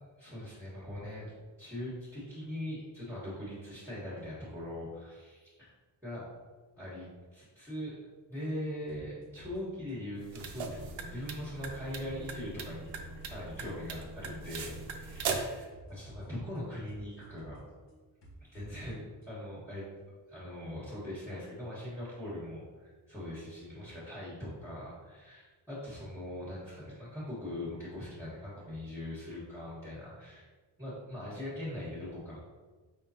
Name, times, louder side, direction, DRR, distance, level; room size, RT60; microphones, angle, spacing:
voice 1, 0.2-1.3 1.6-5.7 6.0-6.2 6.8-7.1 7.3-8.0 8.3-12.9 13.2-17.6 18.5-19.9 20.3-30.5 30.8-32.4, left 1 dB, 5° right, -9 dB, 1.3 m, -41 dB
sound 1, 8.9-18.9 19.2-19.3, right 1 dB, 65° left, 1.2 m, -54 dB
sound 2, 10.2-15.6, right 4 dB, 85° right, 0.6 m, -39 dB
5.1 x 3.6 x 2.8 m, 1.3 s
wide cardioid pair, 105°, 45 cm